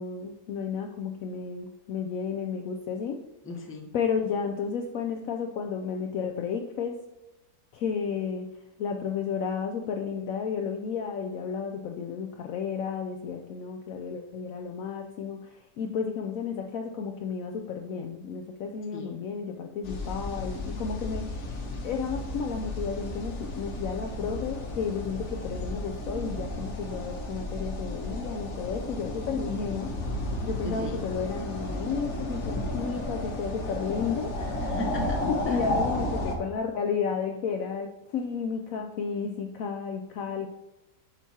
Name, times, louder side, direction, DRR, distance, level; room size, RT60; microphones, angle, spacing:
voice 1, 0.0-3.2 3.9-7.0 7.7-8.5 8.8-21.6 21.8-30.0 30.4-34.6 35.3-40.5, left 6 dB, 70° left, 3 dB, 0.8 m, -32 dB
voice 2, 3.4-3.9 18.9-19.1 30.6-31.0 34.6-35.2 35.5-35.6, left 2 dB, 15° left, 1 dB, 0.5 m, -38 dB
sound 1, 19.8-36.3, left 1 dB, 50° left, 1.1 m, -33 dB
8.0 x 5.9 x 2.8 m, 0.96 s
omnidirectional pair, 1.8 m